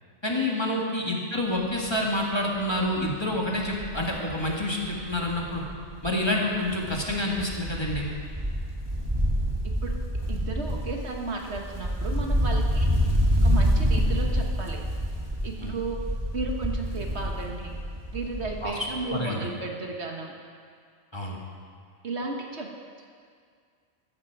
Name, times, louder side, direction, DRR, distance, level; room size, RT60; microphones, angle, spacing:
voice 1, 0.2-5.6 6.0-8.1 15.6-15.7 18.6-18.7 19.1-19.5 21.1-21.4, left 1 dB, 20° left, -2 dB, 1.9 m, -28 dB
Wind, 1.7-1.9 2.3-2.4 2.7-6.2 6.5-18.7 19.0-19.1, equal, 20° right, 1.8 m, -27 dB
voice 2, 10.3-12.9 13.4-14.8 15.4-16.0 16.3-17.7 18.1-20.3 22.0-22.7, right 3 dB, 65° right, 1 dB, 1.6 m, -34 dB
14.5 x 13.5 x 4.8 m, 2.1 s
omnidirectional pair, 1.2 m